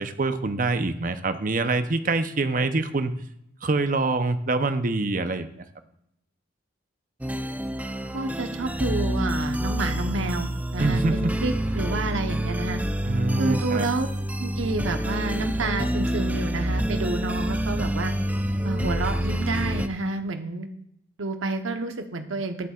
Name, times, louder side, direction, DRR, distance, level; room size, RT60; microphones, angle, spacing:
voice 1, 0.0-3.1 3.6-5.5 10.8-11.3 13.0-13.9, right 3 dB, 45° right, 9 dB, 0.7 m, -25 dB
sound 1, 7.2-19.9, equal, 10° right, 0.5 m, -27 dB
voice 2, 8.1-12.8 13.4-14.1 14.4-18.1 18.6-20.7 21.2-22.7, right 2 dB, 80° right, 7 dB, 1.0 m, -29 dB
20.0 x 7.2 x 2.4 m, 0.78 s
head